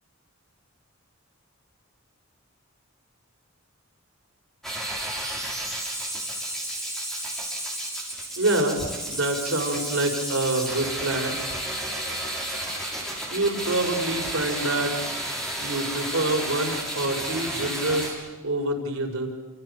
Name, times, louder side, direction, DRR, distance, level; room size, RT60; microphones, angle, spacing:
sound 1, 4.6-18.1, right 1 dB, ahead, 7.1 m, -32 dB
voice 1, 8.4-11.4 13.3-14.9 15.6-18.2 18.4-19.3, right 2 dB, 85° right, 2 dB, 4.8 m, -26 dB
30.0 x 28.0 x 6.8 m, 1.2 s
head